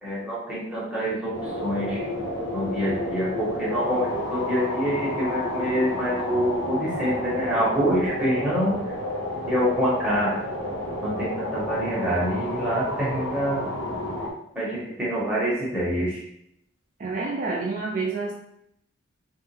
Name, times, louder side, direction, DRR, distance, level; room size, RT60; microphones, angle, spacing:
voice 1, 0.0-2.0 2.5-8.8 9.5-10.4 11.0-13.6 14.5-16.2, equal, 5° right, -8 dB, 1.5 m, -26 dB
sound 1, 1.3-14.3, left 1 dB, 85° left, 1.1 m, -30 dB
voice 2, 17.0-18.3, right 3 dB, 40° right, -1 dB, 0.4 m, -28 dB
3.7 x 2.6 x 3.4 m, 0.74 s
head